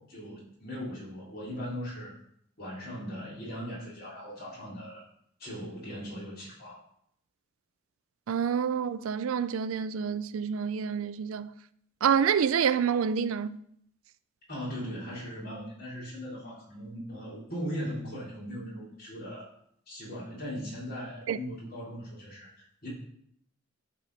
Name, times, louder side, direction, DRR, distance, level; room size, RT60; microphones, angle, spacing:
voice 1, 0.0-2.1 2.6-5.0 5.4-6.8 14.5-19.5 19.9-22.9, equal, 45° left, 3.7 m, -39 dB
voice 2, 8.3-11.5 12.0-13.6 21.3-21.4, right 7 dB, 85° right, 0.4 m, -27 dB
11.0 x 4.3 x 4.1 m
head